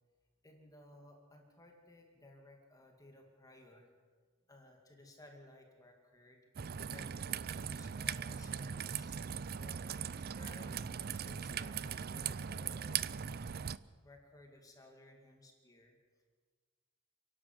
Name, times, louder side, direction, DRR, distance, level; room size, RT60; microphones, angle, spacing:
voice 1, 0.4-3.9 4.5-6.4 6.7-9.2 9.6-10.9 11.2-13.2 14.0-16.0, left 1 dB, 15° left, 1 dB, 2.3 m, -59 dB
Raindrop / Trickle dribble, 6.6-13.8, right 7 dB, 50° right, 0.5 m, -40 dB
29.5 x 11.5 x 7.8 m, 1.5 s
head